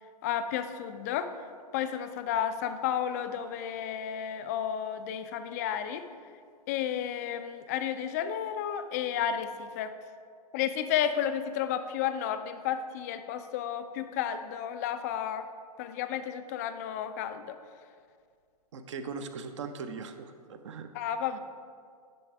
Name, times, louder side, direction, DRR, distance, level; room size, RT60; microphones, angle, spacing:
voice 1, 0.2-1.3 1.7-6.0 6.7-9.9 10.5-15.5 15.8-17.5 20.9-21.4, left 9 dB, 25° left, 9 dB, 0.3 m, -32 dB
voice 2, 18.7-20.9, right 5 dB, 45° right, 8 dB, 0.6 m, -39 dB
9.7 x 3.8 x 4.6 m, 2.1 s
figure-of-eight pair, 120°, 21 cm